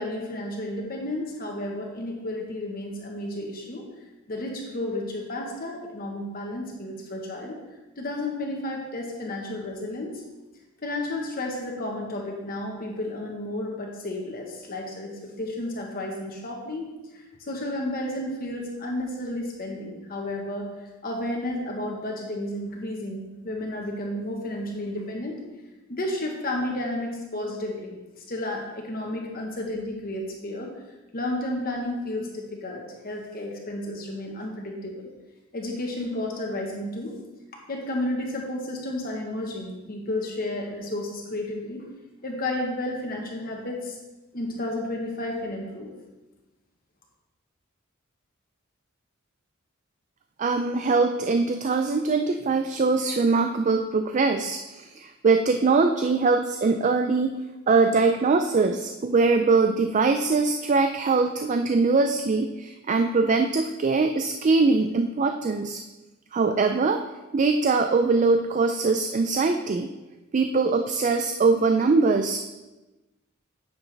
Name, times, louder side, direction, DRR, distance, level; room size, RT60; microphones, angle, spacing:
voice 1, 0.0-3.8 4.3-7.6 8.0-10.1 10.8-20.7 21.0-25.4 25.9-28.0 28.3-30.7 31.1-35.1 35.5-37.1 37.7-41.9 42.2-44.0 44.3-45.9, left 1 dB, 45° left, 0 dB, 1.2 m, -32 dB
voice 2, 50.4-57.4 57.7-65.8 66.3-67.0 67.3-69.9 70.3-72.4, right 4 dB, 35° right, 7 dB, 0.3 m, -22 dB
9.7 x 6.9 x 3.3 m, 1.1 s
head